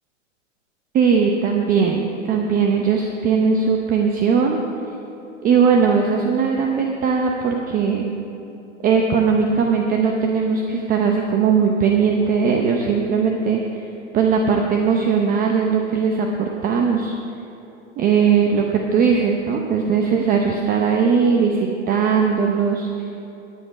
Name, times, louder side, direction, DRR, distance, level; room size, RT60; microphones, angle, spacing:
voice 1, 0.9-4.6 5.4-8.1 8.8-13.8 14.1-17.1 18.0-22.9, right 6 dB, 25° right, 2 dB, 0.8 m, -19 dB
12.0 x 10.0 x 4.9 m, 2.9 s
hypercardioid pair, 125°, 37 cm